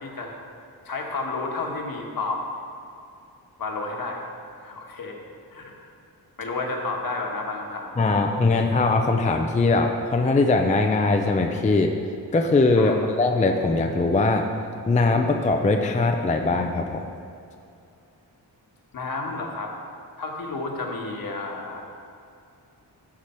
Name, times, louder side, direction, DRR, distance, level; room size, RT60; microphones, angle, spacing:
voice 1, 0.0-0.4 0.8-2.4 3.6-4.2 4.5-5.2 5.5-5.7 6.4-8.3 12.8-13.1 18.9-19.7 20.2-21.8, left 3 dB, 55° left, 1 dB, 1.4 m, -31 dB
voice 2, 8.0-11.9 12.3-14.4 14.9-17.1, left 3 dB, 20° left, 4 dB, 0.4 m, -21 dB
14.5 x 4.9 x 4.4 m, 2.5 s
wide cardioid pair, 135°, 41 cm